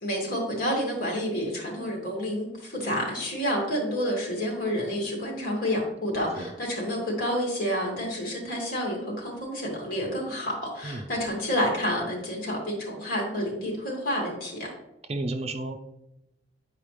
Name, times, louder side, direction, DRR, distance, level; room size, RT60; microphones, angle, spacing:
voice 1, 0.0-14.7, equal, 55° left, -1 dB, 2.2 m, -29 dB
voice 2, 15.1-15.8, right 2 dB, 35° right, 6 dB, 0.5 m, -32 dB
8.8 x 4.8 x 3.3 m, 0.89 s
head